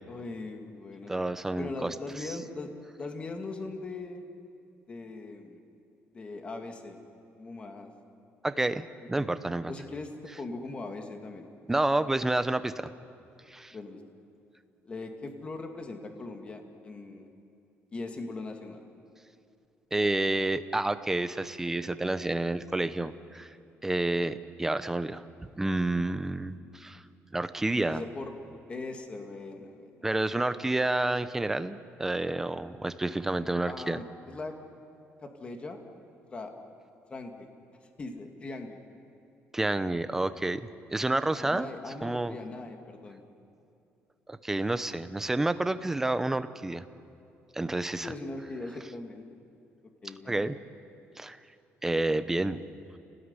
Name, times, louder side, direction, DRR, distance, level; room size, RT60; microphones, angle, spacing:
voice 1, 0.1-1.1 1.5-2.7 3.0-4.2 4.9-5.6 6.1-7.0 7.4-7.9 9.2-9.3 9.7-10.1 10.4-11.5 13.7-14.0 14.9-17.3 17.9-18.8 27.9-28.3 28.7-30.0 33.7-34.5 35.2-35.8 36.3-36.5 37.1-37.5 38.0-38.8 41.4-43.2 48.0-49.2 50.0-50.5, left 3 dB, 25° left, 4 dB, 2.3 m, -40 dB
voice 2, 1.1-1.9 8.4-9.7 11.7-12.9 13.5-13.7 19.9-23.6 23.8-25.2 25.6-27.0 27.3-28.0 30.0-34.0 39.5-40.6 40.9-41.7 42.0-42.3 44.3-46.8 47.5-48.1 50.3-50.5 51.2-51.4 51.8-52.6, right 2 dB, 10° right, 11 dB, 0.8 m, -29 dB
29.0 x 18.5 x 9.8 m, 2.7 s
cardioid pair, 160°, 5 cm